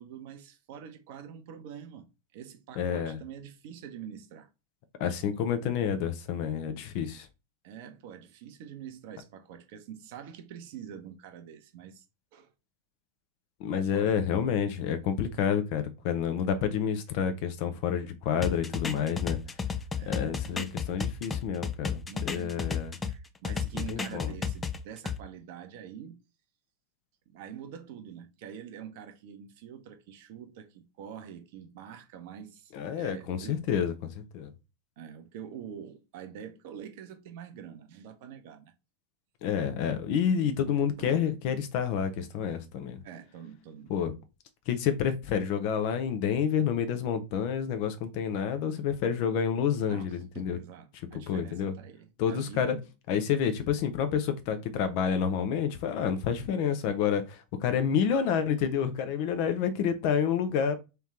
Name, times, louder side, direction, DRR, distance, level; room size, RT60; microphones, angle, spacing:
voice 1, 0.0-4.5 7.6-12.0 12.3-12.5 13.8-14.2 20.0-21.0 22.1-26.2 27.3-33.6 35.0-38.7 41.0-41.4 43.0-43.9 49.9-52.9, right 8 dB, 50° right, 0.8 m, -45 dB
voice 2, 2.8-3.2 5.0-7.3 13.6-19.4 20.1-22.9 23.9-24.3 32.7-34.5 39.4-43.0 43.9-44.1 44.7-50.6 51.3-51.7 52.2-52.8 53.1-60.8, left 8 dB, 45° left, 0.7 m, -29 dB
sound 1, 18.4-23.1 23.4-25.2, left 6 dB, 15° left, 0.4 m, -32 dB
3.3 x 3.1 x 3.7 m
figure-of-eight pair, 90°, 0 cm